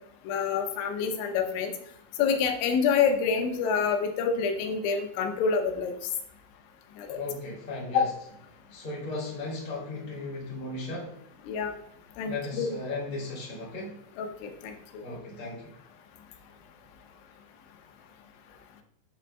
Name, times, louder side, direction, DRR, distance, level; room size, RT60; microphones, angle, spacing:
voice 1, 0.3-1.7 2.2-5.9 7.0-7.2 7.9-8.1 11.5-11.7 12.2-12.7 14.2-15.0, left 6 dB, 80° left, 4 dB, 3.1 m, -27 dB
voice 2, 7.1-8.3 8.7-11.2 12.3-14.0 15.0-15.7, left 2 dB, 15° left, -5 dB, 1.7 m, -36 dB
8.6 x 7.8 x 2.2 m, 0.70 s
omnidirectional pair, 5.4 m